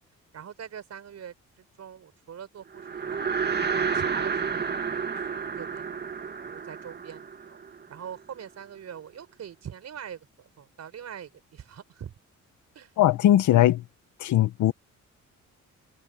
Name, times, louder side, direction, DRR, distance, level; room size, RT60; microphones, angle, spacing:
voice 1, 0.3-3.2 3.7-7.6 7.9-12.1 12.7-12.9, right 8 dB, 60° right, 5.5 m, -43 dB
sound 1, 2.7-8.2, right 6 dB, 35° right, 2.1 m, -30 dB
voice 2, 13.0-13.8 14.2-14.7, left 13 dB, 80° left, 1.5 m, -20 dB
cardioid pair, 90°, 30 cm